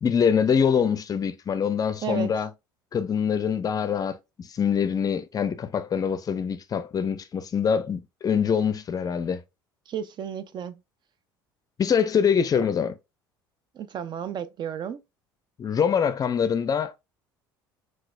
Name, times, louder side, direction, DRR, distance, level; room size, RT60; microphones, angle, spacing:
voice 1, 0.0-2.5 2.9-9.4 11.8-12.9 15.6-17.0, left 7 dB, 30° left, 0.5 m, -24 dB
voice 2, 9.9-10.8 13.7-15.0, right 8 dB, 40° right, 0.4 m, -32 dB
3.9 x 2.4 x 2.4 m
hypercardioid pair, 65°, 12 cm